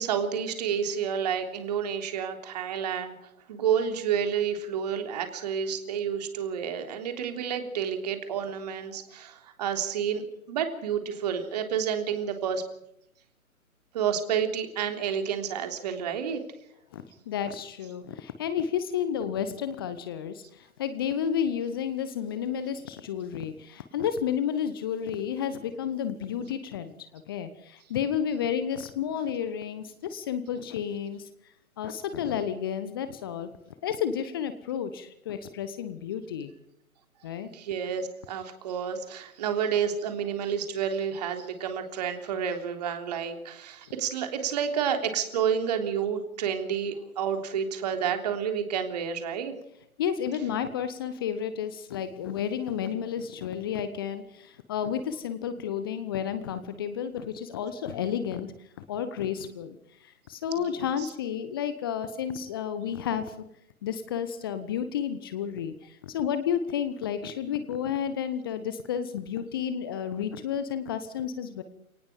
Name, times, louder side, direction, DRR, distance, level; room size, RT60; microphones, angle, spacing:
voice 1, 0.0-3.1 3.5-12.6 13.9-16.4 37.4-49.5 60.7-61.1, right 8 dB, 30° right, 6 dB, 3.4 m, -30 dB
voice 2, 16.9-31.3 31.8-33.5 33.8-36.5 37.2-37.5 50.0-58.5 58.9-63.3 63.8-71.6, left 8 dB, 15° left, 11 dB, 1.0 m, -31 dB
29.5 x 18.5 x 5.2 m, 0.77 s
figure-of-eight pair, 135°, 42 cm